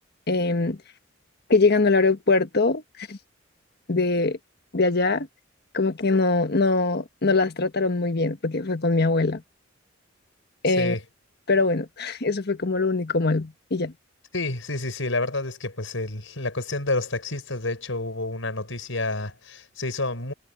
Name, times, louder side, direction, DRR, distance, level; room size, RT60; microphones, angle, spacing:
voice 1, 0.3-0.8 1.5-3.2 3.9-4.4 4.7-5.3 5.7-9.4 10.6-10.9 11.5-13.9, left 3 dB, 55° left, 1.4 m, -22 dB
voice 2, 10.7-11.0 14.3-20.3, left 2 dB, 75° left, 5.6 m, -29 dB
head